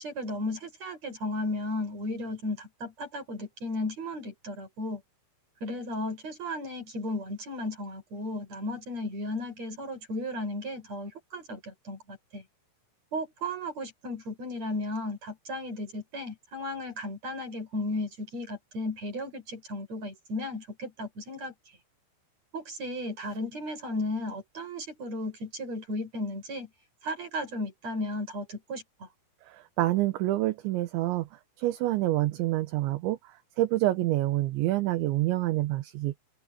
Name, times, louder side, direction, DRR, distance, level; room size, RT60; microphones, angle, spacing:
voice 1, 0.0-5.0 5.6-12.4 13.1-21.5 22.5-26.7 27.0-29.1, left 1 dB, 35° right, 7.0 m, -35 dB
voice 2, 29.8-31.3 31.6-33.2 33.6-36.1, right 16 dB, 75° right, 3.3 m, -27 dB
open air
omnidirectional pair, 5.5 m